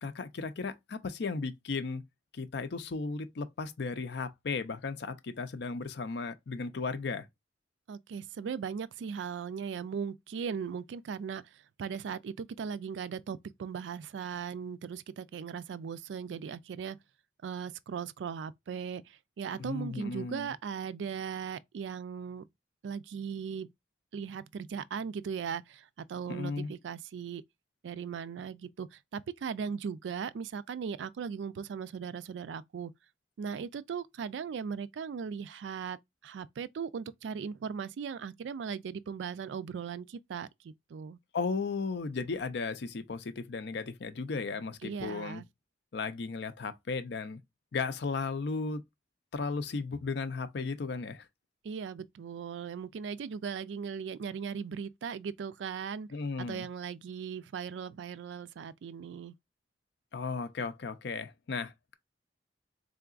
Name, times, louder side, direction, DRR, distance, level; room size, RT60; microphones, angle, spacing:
voice 1, 0.0-2.0 2.3-7.3 19.6-20.5 26.3-26.7 41.3-45.4 45.9-47.4 47.7-48.8 49.3-51.3 56.1-56.7 60.1-61.9, left 4 dB, 65° left, 0.5 m, -35 dB
voice 2, 7.9-11.4 11.8-17.0 17.4-22.4 22.8-23.7 24.1-27.4 27.8-32.9 33.4-36.0 36.2-41.2 44.8-45.4 51.6-56.1 56.5-59.3, right 6 dB, 75° right, 0.3 m, -38 dB
3.8 x 3.4 x 2.4 m
head